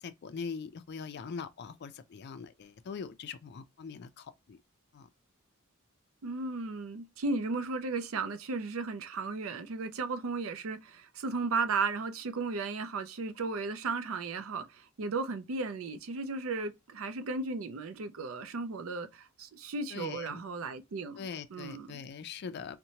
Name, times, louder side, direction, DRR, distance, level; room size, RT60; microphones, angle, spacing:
voice 1, 0.0-4.6 4.9-5.1 19.9-20.4 21.2-22.8, left 5 dB, 50° left, 0.4 m, -42 dB
voice 2, 6.2-22.0, right 4 dB, 70° right, 0.5 m, -35 dB
2.8 x 2.2 x 2.7 m
head